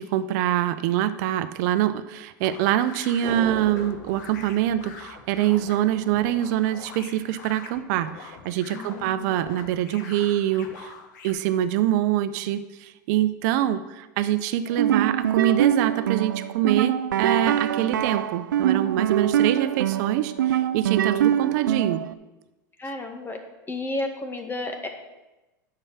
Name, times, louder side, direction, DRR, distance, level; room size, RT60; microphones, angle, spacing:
voice 1, 0.0-10.9 11.2-22.0, right 12 dB, 60° right, 13 dB, 0.8 m, -25 dB
sound 1, 2.4-11.3, left 5 dB, 70° left, 1.5 m, -44 dB
sound 2, 3.2-5.7 6.0-6.1, right 5 dB, 40° right, 2.0 m, -37 dB
voice 2, 8.7-9.3 17.8-17.9 22.8-23.4 23.7-24.9, left 2 dB, 20° left, 5 dB, 1.8 m, -32 dB
sound 3, 14.7-22.1, right 10 dB, 85° right, 0.4 m, -24 dB
9.9 x 7.0 x 6.1 m, 1.1 s
hypercardioid pair, 95°, 10 cm